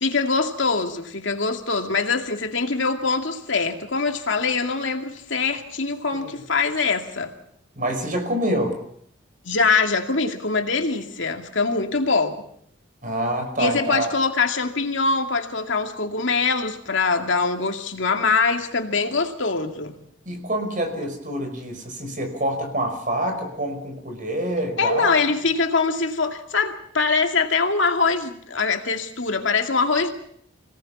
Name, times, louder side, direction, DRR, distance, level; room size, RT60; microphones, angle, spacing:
voice 1, 0.0-7.3 9.4-12.4 13.6-20.0 24.8-30.1, left 4 dB, 70° left, 4 dB, 2.4 m, -23 dB
voice 2, 7.8-8.7 13.0-14.1 20.3-25.1, right 1 dB, 40° right, 5 dB, 5.4 m, -26 dB
25.5 x 18.5 x 7.2 m, 0.67 s
head